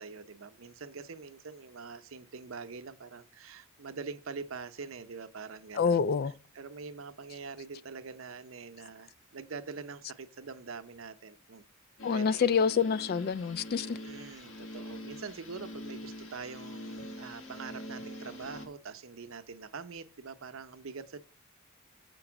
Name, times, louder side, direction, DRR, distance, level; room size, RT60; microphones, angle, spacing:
voice 1, 0.0-6.1 6.5-11.6 12.1-12.6 13.7-21.2, right 5 dB, 70° right, 0.7 m, -44 dB
voice 2, 5.7-6.3 12.0-14.0, left 6 dB, 50° left, 0.3 m, -27 dB
sound 1, 12.0-18.7, left 1 dB, 65° left, 1.4 m, -44 dB
7.8 x 5.3 x 5.9 m
head